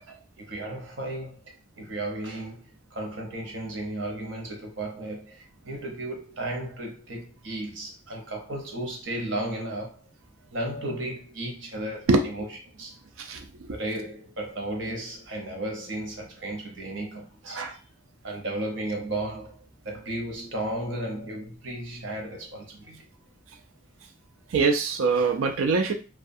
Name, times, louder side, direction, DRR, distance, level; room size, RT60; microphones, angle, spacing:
voice 1, 0.4-10.0 10.5-12.5 12.8-12.9 13.7-17.7 18.2-23.1, right 1 dB, 65° right, 0.8 m, -34 dB
voice 2, 13.2-13.7 17.5-17.8 24.5-25.9, right 4 dB, 90° right, 0.5 m, -24 dB
2.3 x 2.3 x 2.6 m
head